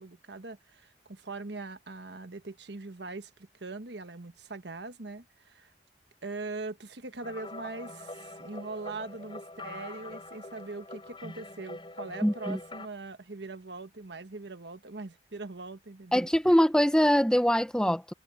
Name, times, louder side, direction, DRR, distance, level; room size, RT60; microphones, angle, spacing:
voice 1, 0.0-5.7 6.2-16.3, right 3 dB, 75° right, 1.3 m, -41 dB
sound 1, 7.2-12.9, left 2 dB, 25° left, 6.4 m, -44 dB
voice 2, 12.2-12.6 16.1-18.1, equal, 5° left, 1.0 m, -23 dB
head